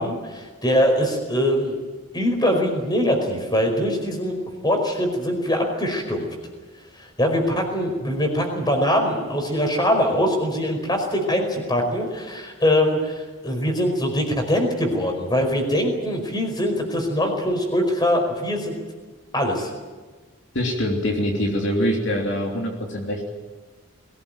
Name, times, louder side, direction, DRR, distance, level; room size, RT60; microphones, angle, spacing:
voice 1, 0.0-1.8 2.1-4.3 4.6-6.3 7.0-18.7 19.3-19.7, equal, 20° left, 4 dB, 4.9 m, -22 dB
voice 2, 20.5-23.3, equal, 55° left, 0 dB, 3.2 m, -24 dB
22.5 x 18.5 x 9.1 m, 1.4 s
head